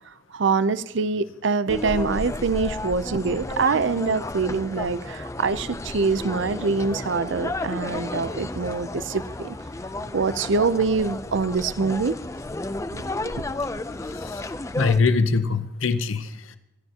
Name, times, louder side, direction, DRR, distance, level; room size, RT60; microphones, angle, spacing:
voice 1, 0.1-9.6 10.1-12.2 12.9-13.3, right 4 dB, 65° right, 15 dB, 0.5 m, -25 dB
sound 1, 1.7-15.0, left 2 dB, 15° left, 0.5 m, -32 dB
voice 2, 13.9-14.5 14.7-16.6, left 4 dB, 85° left, 11 dB, 0.7 m, -23 dB
26.5 x 12.5 x 2.9 m, 0.89 s
head